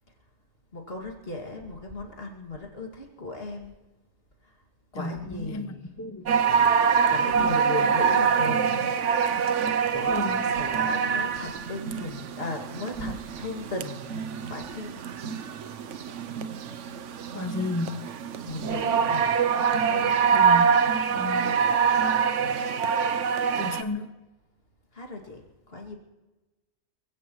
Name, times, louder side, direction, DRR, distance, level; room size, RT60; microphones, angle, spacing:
voice 1, 0.7-3.7 4.4-4.6 4.9-5.8 7.1-8.8 9.9-14.1 14.5-14.9 18.4-19.3 19.9-20.3 24.9-26.0, left 2 dB, 45° left, 2.5 m, -37 dB
voice 2, 4.9-6.6 7.3-7.9 10.1-10.6 17.3-18.1 20.3-20.7 21.1-21.6 23.6-24.1, left 2 dB, 20° left, 0.5 m, -33 dB
sound 1, 6.3-23.8, right 6 dB, 65° right, 1.1 m, -25 dB
27.0 x 16.5 x 3.1 m
omnidirectional pair, 1.4 m